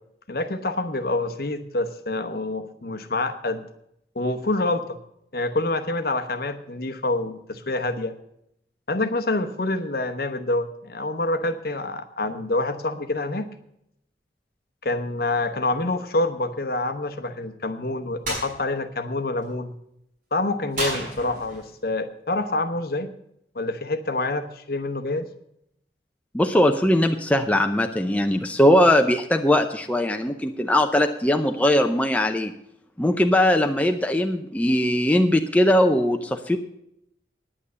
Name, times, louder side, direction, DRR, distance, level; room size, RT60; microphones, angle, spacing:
voice 1, 0.3-3.7 4.1-5.0 5.3-8.1 8.9-13.5 14.8-19.7 20.3-23.1 23.5-25.3, left 2 dB, 55° left, 9 dB, 0.9 m, -27 dB
sound 1, 18.2-18.5 20.7-21.7, right 1 dB, 50° right, 5.2 m, -30 dB
voice 2, 26.3-32.5 33.0-36.6, left 1 dB, 10° left, 5 dB, 0.6 m, -20 dB
9.8 x 8.9 x 6.8 m, 0.77 s
head